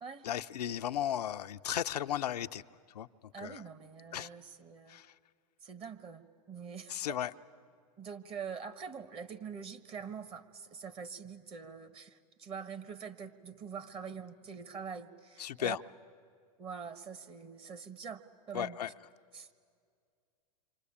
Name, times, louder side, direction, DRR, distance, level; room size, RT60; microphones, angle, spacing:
voice 1, 0.2-2.6 2.9-3.1 3.4-3.6 4.1-4.3 4.9-5.1 6.9-7.3 15.4-15.8 18.5-18.9, left 11 dB, 80° left, 0.6 m, -35 dB
voice 2, 3.3-5.0 5.6-7.2 8.0-15.8 16.6-18.2 18.5-18.8 19.3-19.5, right 6 dB, 30° right, 1.4 m, -44 dB
27.5 x 25.0 x 8.6 m
hypercardioid pair, 115°, 20 cm